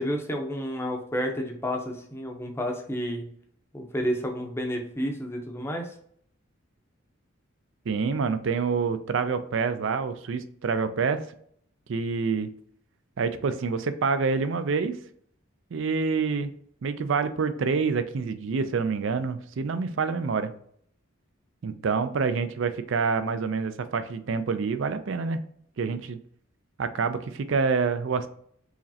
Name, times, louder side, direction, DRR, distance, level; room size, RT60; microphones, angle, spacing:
voice 1, 0.0-3.3 3.7-5.9, equal, 10° left, 2 dB, 0.6 m, -30 dB
voice 2, 7.9-11.2 11.9-12.5 13.2-14.9 15.7-16.5 16.8-20.5 21.6-25.4 25.8-26.2 26.8-28.3, right 5 dB, 60° right, 11 dB, 0.4 m, -27 dB
4.7 x 3.1 x 2.7 m, 0.64 s
head